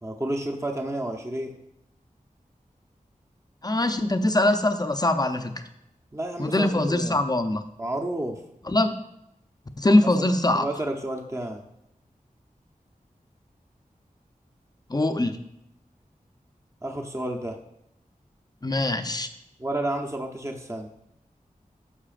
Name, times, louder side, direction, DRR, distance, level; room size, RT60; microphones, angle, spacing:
voice 1, 0.0-1.5 6.1-7.2 7.8-8.4 10.0-10.3 10.5-11.7 16.8-17.6 19.6-20.9, right 1 dB, 20° right, 3 dB, 0.7 m, -31 dB
voice 2, 3.6-5.5 6.4-7.6 8.7-8.9 9.8-10.7 14.9-15.4 18.6-19.3, left 1 dB, 25° left, 7 dB, 0.6 m, -22 dB
9.9 x 6.7 x 2.5 m, 0.83 s
wide cardioid pair, 45°, 15 cm